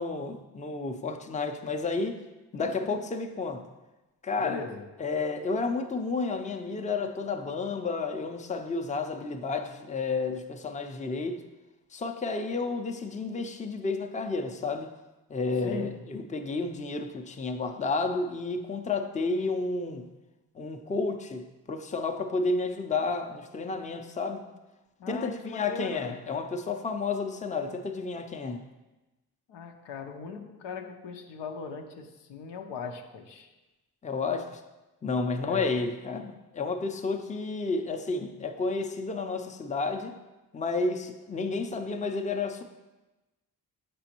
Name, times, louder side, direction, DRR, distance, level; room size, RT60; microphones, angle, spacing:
voice 1, 0.0-2.2 2.5-3.7 4.2-4.6 5.0-11.4 11.9-14.9 15.3-20.1 20.6-24.5 25.1-28.7 34.0-34.6 35.0-40.1 40.5-42.6, left 3 dB, 20° left, 0.5 m, -31 dB
voice 2, 2.5-3.0 4.4-4.9 15.6-16.0 25.0-26.2 29.5-33.6 35.3-35.7, left 5 dB, 85° left, 0.6 m, -39 dB
6.8 x 5.1 x 2.9 m
cardioid pair, 55°, 42 cm